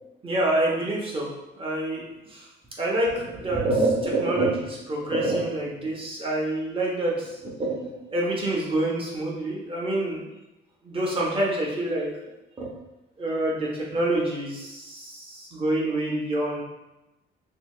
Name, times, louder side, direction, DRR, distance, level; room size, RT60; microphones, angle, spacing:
voice 1, 0.2-1.3 1.6-2.0 2.3-2.5 2.8-10.2 10.8-12.1 12.6-12.7 13.2-16.6, right 1 dB, 25° right, -4 dB, 1.2 m, -26 dB
5.5 x 2.1 x 3.2 m, 0.98 s
cardioid pair, 90°, 20 cm